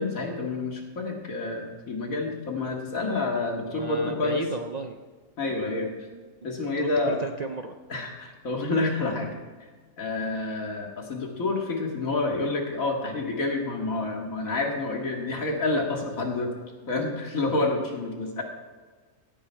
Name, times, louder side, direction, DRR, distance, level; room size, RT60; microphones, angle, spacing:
voice 1, 0.0-4.4 5.4-5.9 6.4-7.2 7.9-9.3 10.0-16.5 16.9-18.4, left 3 dB, 75° left, 1 dB, 2.4 m, -28 dB
voice 2, 3.7-5.0 5.8-6.2 6.8-7.7, right 3 dB, 45° right, 5 dB, 0.5 m, -35 dB
16.5 x 8.8 x 4.7 m, 1.4 s
omnidirectional pair, 1.4 m